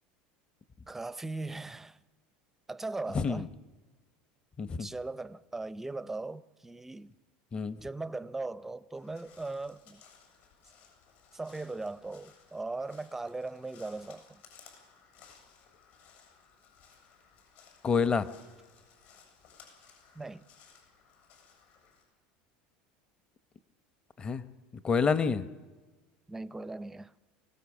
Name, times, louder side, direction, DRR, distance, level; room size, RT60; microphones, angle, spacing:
voice 1, 0.9-2.0 2.7-3.5 4.8-7.1 7.7-10.0 11.3-14.4 20.1-20.5 26.3-27.1, right 3 dB, 10° right, 0.5 m, -39 dB
voice 2, 4.6-4.9 7.5-7.8 17.8-18.3 24.2-24.4 24.8-25.4, left 5 dB, 25° left, 0.9 m, -27 dB
Crow, 8.9-22.0, left 6 dB, 65° left, 7.4 m, -59 dB
24.5 x 17.0 x 7.2 m
supercardioid pair, 130°, 4 cm